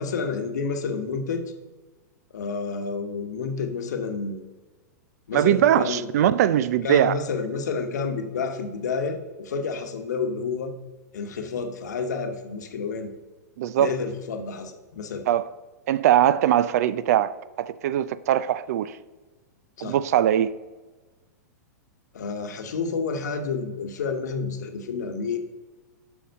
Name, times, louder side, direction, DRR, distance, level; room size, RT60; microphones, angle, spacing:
voice 1, 0.0-1.5 2.3-4.4 5.3-6.1 6.8-10.7 11.1-13.1 13.7-15.2 19.8-20.0 22.1-25.4, left 5 dB, 70° left, 1.0 m, -30 dB
voice 2, 5.3-7.1 13.6-13.9 15.3-15.4 15.9-19.0 19.8-20.5, right 11 dB, 60° right, 0.4 m, -21 dB
8.2 x 5.8 x 5.2 m
hypercardioid pair, 110°, 10 cm